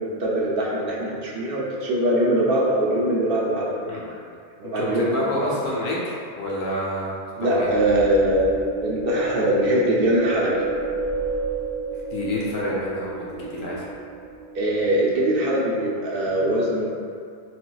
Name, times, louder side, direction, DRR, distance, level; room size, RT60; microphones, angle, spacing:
voice 1, 0.0-4.2 4.6-5.4 7.4-10.6 14.5-16.9, right 1 dB, 65° right, -5 dB, 0.8 m, -22 dB
voice 2, 4.6-7.7 12.1-13.9, left 1 dB, 80° left, -5 dB, 0.9 m, -28 dB
sound 1, 7.7-15.0, right 3 dB, 30° right, 0.8 m, -30 dB
4.2 x 2.2 x 2.2 m, 2.3 s
omnidirectional pair, 1.1 m